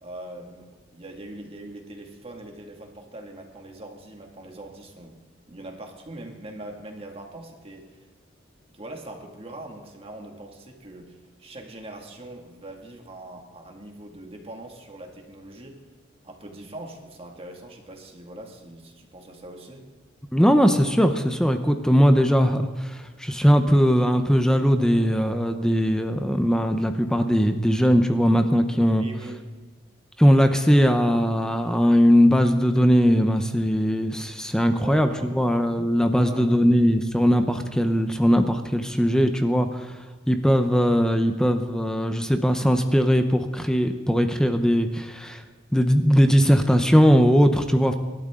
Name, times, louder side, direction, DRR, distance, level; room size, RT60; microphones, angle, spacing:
voice 1, 0.0-5.2 5.5-8.0 8.7-15.8 16.2-19.8 29.0-29.4 34.8-35.6 36.1-36.5, right 1 dB, 30° right, 2 dB, 2.2 m, -41 dB
voice 2, 20.3-29.1 30.2-39.9 40.3-45.4 45.7-47.9, equal, 5° left, 7 dB, 0.8 m, -20 dB
26.5 x 12.5 x 3.8 m, 1.3 s
head